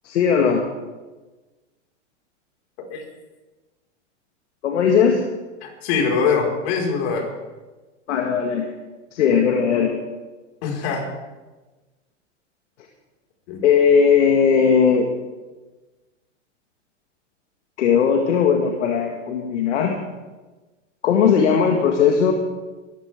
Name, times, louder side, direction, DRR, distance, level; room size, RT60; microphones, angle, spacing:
voice 1, 0.0-0.6 4.6-5.2 8.1-8.7 9.1-9.9 13.6-15.1 17.8-20.0 21.0-22.3, left 6 dB, 75° left, 2 dB, 1.9 m, -18 dB
voice 2, 5.6-7.3 10.6-11.0 13.5-13.6, left 5 dB, 55° left, 0 dB, 5.1 m, -23 dB
21.0 x 14.5 x 3.7 m, 1.2 s
hypercardioid pair, 115°, 36 cm